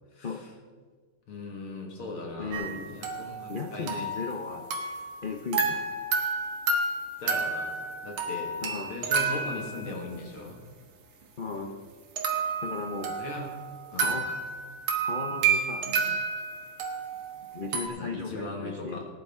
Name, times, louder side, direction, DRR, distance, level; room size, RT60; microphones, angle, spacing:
voice 1, 0.1-0.5 1.3-4.1 7.2-7.7 8.0-8.5 8.9-10.6 13.2-13.5 13.9-14.2 18.0-19.0, left 2 dB, 80° left, 0 dB, 2.9 m, -39 dB
voice 2, 2.4-3.0 3.5-4.7 5.2-5.8 8.6-9.0 11.4-11.8 12.6-13.2 14.0-14.4 15.0-16.2 17.5-19.0, left 4 dB, 55° left, 1 dB, 0.5 m, -36 dB
sound 1, 2.5-5.2 5.5-10.2 12.2-17.9, right 4 dB, 85° right, 2.2 m, -30 dB
19.5 x 9.9 x 3.7 m, 1.5 s
omnidirectional pair, 2.3 m